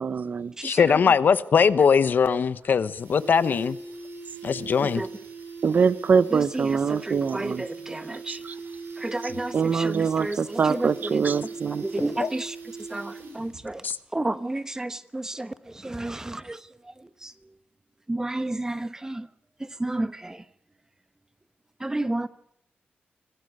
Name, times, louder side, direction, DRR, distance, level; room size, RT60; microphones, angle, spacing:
voice 1, 0.0-0.5 5.6-7.6 8.3-8.5 9.5-11.8, right 6 dB, 50° right, 0.8 m, -24 dB
voice 2, 0.6-3.8 4.4-5.0 12.2-12.3 13.8-14.0, left 6 dB, 60° left, 1.0 m, -21 dB
sound 1, 2.1-2.2 2.4-2.5 2.8-13.7 13.9-14.0, right 4 dB, 85° right, 7.3 m, -40 dB
voice 3, 6.3-8.4 9.0-11.3 11.8-12.5 12.9-13.8 14.1-15.5 15.8-16.6 18.1-19.2 19.8-20.4 21.8-22.3, right 2 dB, 15° right, 1.1 m, -31 dB
25.5 x 17.5 x 6.7 m
wide cardioid pair, 130°, 4 cm